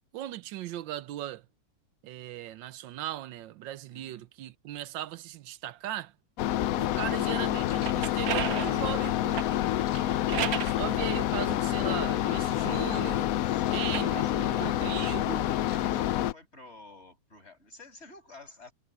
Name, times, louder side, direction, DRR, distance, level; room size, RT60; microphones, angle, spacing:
voice 1, 0.1-1.5 2.0-6.1 6.8-9.4 10.6-13.3 13.7-15.5, right 13 dB, 80° right, 1.4 m, -38 dB
voice 2, 3.9-4.2 9.6-10.0 11.4-11.6 13.5-18.7, left 2 dB, 35° left, 7.2 m, -51 dB
sound 1, 6.4-16.3, left 13 dB, 90° left, 0.7 m, -28 dB
sound 2, 7.6-10.8 11.5-13.2 13.8-16.1, right 10 dB, 60° right, 1.2 m, -37 dB
omnidirectional pair, 2.1 m